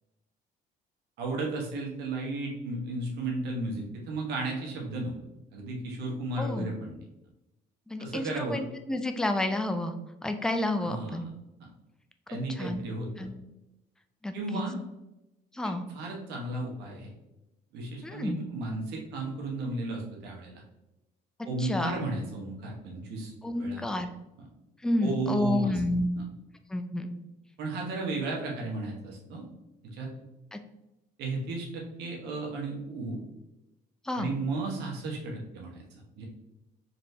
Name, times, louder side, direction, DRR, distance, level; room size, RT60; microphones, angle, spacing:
voice 1, 1.2-5.1 5.5-6.9 8.0-8.6 10.7-11.3 12.3-13.3 14.3-14.8 15.9-17.1 17.7-20.6 21.4-23.8 24.4-24.5 25.0-25.8 26.1-26.2 27.6-29.4 29.9-30.1 31.2-33.2 34.1-35.8 36.2-36.3, right 2 dB, 80° right, -1 dB, 1.1 m, -34 dB
voice 2, 6.4-6.7 7.9-9.9 10.2-11.3 12.6-12.8 13.2-13.3 14.2-14.6 15.5-15.9 18.0-18.4 21.6-22.0 23.4-24.1 24.8-26.2 26.7-27.2 30.5-30.6 34.0-34.3, left 1 dB, 5° left, 7 dB, 0.3 m, -30 dB
4.2 x 3.3 x 2.8 m, 0.94 s
cardioid pair, 110°, 17 cm